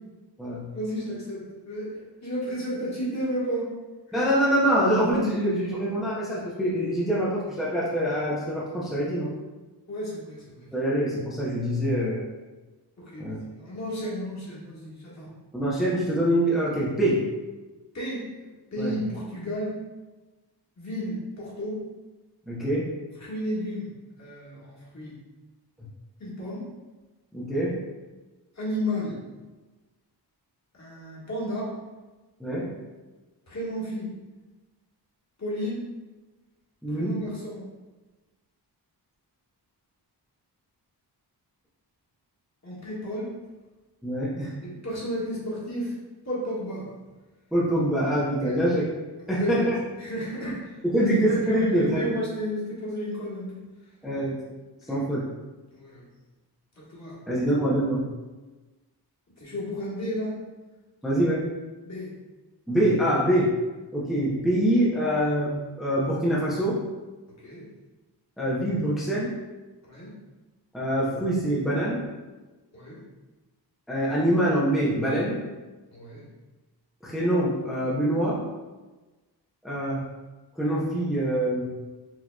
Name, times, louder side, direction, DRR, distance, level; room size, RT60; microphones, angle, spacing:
voice 1, 0.7-3.7 9.9-10.7 13.0-15.3 17.9-18.2 18.7-19.7 20.8-21.8 23.2-23.9 24.2-25.1 26.2-26.6 28.6-29.2 30.8-31.7 33.5-34.1 35.4-35.8 37.0-37.6 42.6-43.3 44.6-45.9 46.2-46.8 48.4-48.6 49.3-49.7 50.0-53.6 54.9-55.0 55.7-56.1 56.9-57.2 59.4-60.3 61.8-62.1 67.4-67.6 69.8-70.1 72.7-73.0 75.9-76.2, equal, 40° left, -7 dB, 1.4 m, -32 dB
voice 2, 4.1-9.3 10.7-12.3 13.2-13.4 15.5-17.2 18.8-19.0 22.5-22.9 27.3-27.8 32.4-32.7 36.8-37.2 44.0-44.5 47.5-48.8 49.3-49.8 50.8-52.0 54.0-54.5 54.9-55.2 57.3-58.1 61.0-61.4 62.7-63.5 63.9-66.8 68.4-69.3 70.7-72.0 73.9-75.4 77.0-78.4 79.6-80.0 80.6-81.7, right 1 dB, ahead, -7 dB, 0.6 m, -25 dB
4.9 x 2.8 x 2.2 m, 1.2 s
wide cardioid pair, 105°, 41 cm